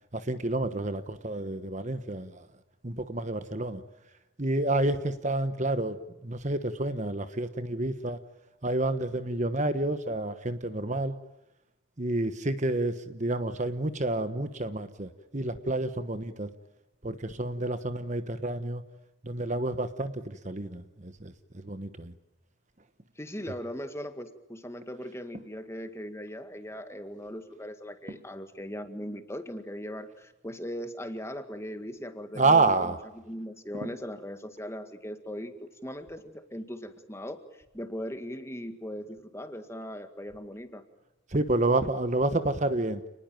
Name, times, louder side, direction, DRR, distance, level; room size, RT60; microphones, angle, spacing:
voice 1, 0.1-2.5 2.8-3.8 4.4-8.2 8.6-11.1 12.0-16.5 17.0-18.8 19.2-21.3 21.6-22.1 32.3-33.0 33.8-33.9 41.3-43.0, right 2 dB, 35° right, 11 dB, 1.2 m, -29 dB
voice 2, 23.2-33.0 33.3-40.8, equal, 15° left, 8 dB, 1.9 m, -39 dB
29.5 x 20.0 x 9.1 m, 0.96 s
head